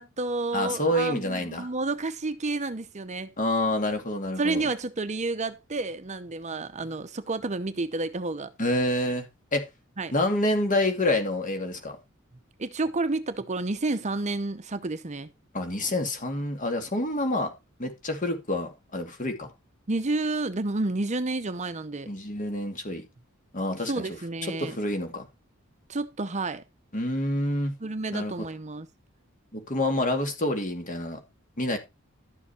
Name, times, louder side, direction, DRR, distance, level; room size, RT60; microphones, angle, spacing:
voice 1, 0.0-3.3 4.4-8.5 10.0-10.1 12.6-15.3 19.9-22.1 23.8-24.8 25.9-26.6 27.8-28.9, right 3 dB, 35° right, 0.8 m, -30 dB
voice 2, 0.5-1.7 3.4-4.7 8.6-9.3 9.5-9.6 10.1-12.0 15.5-17.5 17.8-19.5 22.1-23.0 23.5-24.0 24.6-25.2 26.9-27.7 28.1-28.3 29.5-31.2 31.6-31.8, left 1 dB, 40° left, 2.6 m, -27 dB
12.0 x 7.1 x 4.3 m
head